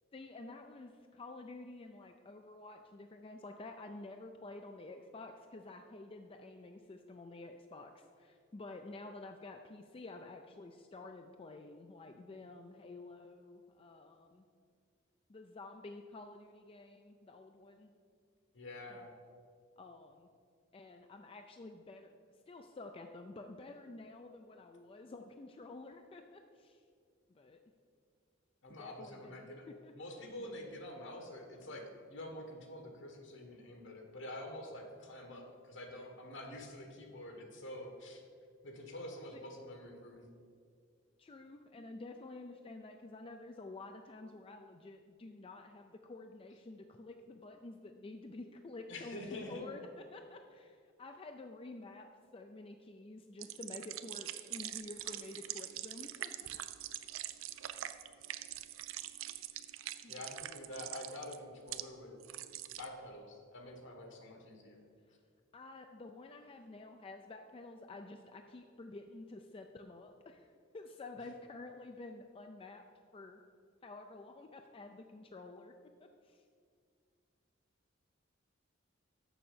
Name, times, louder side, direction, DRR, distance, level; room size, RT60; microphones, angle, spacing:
voice 1, 0.1-14.5 15.3-17.9 19.8-20.3 20.7-22.1 22.5-26.8 27.3-27.6 28.7-29.9 39.3-39.4 41.2-56.8 60.0-60.2 65.5-72.8 73.1-73.4 73.8-75.7 76.0-76.4, left 2 dB, 30° left, 5 dB, 0.4 m, -50 dB
voice 2, 18.5-19.1 28.6-29.6 29.9-38.2 38.6-40.3 48.9-49.6 60.1-62.2 62.8-64.8, left 1 dB, 65° left, 3 dB, 1.5 m, -47 dB
sound 1, 53.4-61.8 62.2-62.9, right 13 dB, 85° right, 0.5 m, -44 dB
6.9 x 6.3 x 7.3 m, 2.2 s
head